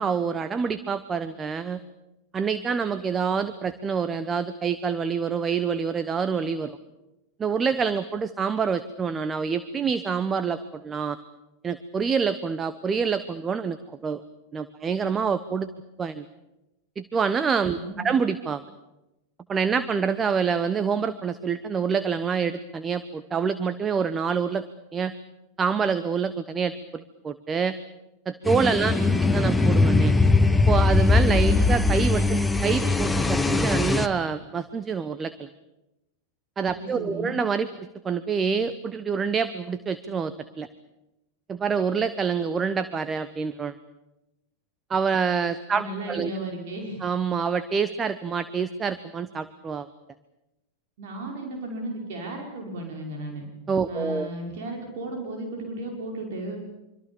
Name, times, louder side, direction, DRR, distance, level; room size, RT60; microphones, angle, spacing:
voice 1, 0.0-1.8 2.3-6.8 7.4-11.2 11.6-14.2 14.5-15.7 16.0-16.2 17.0-18.6 19.5-24.6 24.9-25.1 25.6-27.8 28.3-29.0 29.3-30.1 30.7-35.5 36.6-40.7 41.5-43.7 44.9-46.3 47.0-49.9 53.7-54.3, right 6 dB, 20° right, 13 dB, 1.1 m, -26 dB
voice 2, 17.7-18.1 28.8-29.2 36.7-37.4 45.7-47.1 51.0-53.5 53.9-56.6, right 1 dB, 55° right, 1 dB, 5.6 m, -35 dB
sound 1, 28.5-34.1, left 3 dB, 5° left, 1.2 m, -20 dB
25.5 x 25.0 x 7.2 m, 0.97 s
figure-of-eight pair, 90°, 0 cm